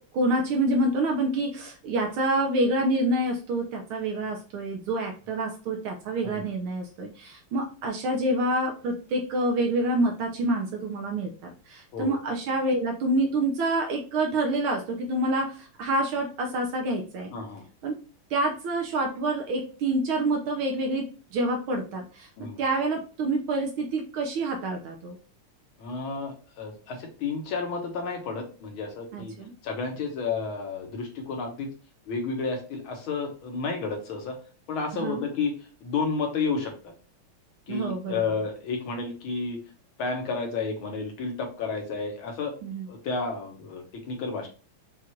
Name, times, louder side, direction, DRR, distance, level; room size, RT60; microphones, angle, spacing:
voice 1, 0.1-17.3 17.8-17.9 18.3-22.3 22.6-25.2 29.1-29.5 34.9-35.2 37.7-38.2 42.6-42.9, right 1 dB, 80° right, 1 dB, 1.6 m, -27 dB
voice 2, 17.3-17.6 22.4-22.6 25.8-29.3 29.6-31.7 32.1-34.4 34.7-36.9 37.7-39.6 40.0-42.5 42.9-44.5, left 4 dB, 75° left, 3 dB, 1.9 m, -31 dB
6.0 x 2.5 x 2.9 m, 0.37 s
omnidirectional pair, 2.4 m